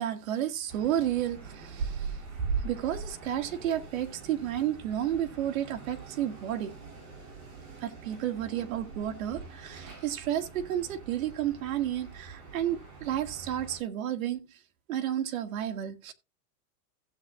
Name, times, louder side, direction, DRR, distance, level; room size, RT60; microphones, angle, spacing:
voice 1, 0.0-2.3 2.6-6.7 7.8-14.6 14.9-16.1, right 11 dB, 60° right, 1.6 m, -32 dB
sound 1, 0.7-13.8, right 5 dB, 35° right, 7.5 m, -41 dB
15.5 x 8.0 x 2.4 m
supercardioid pair, 160°, 45 cm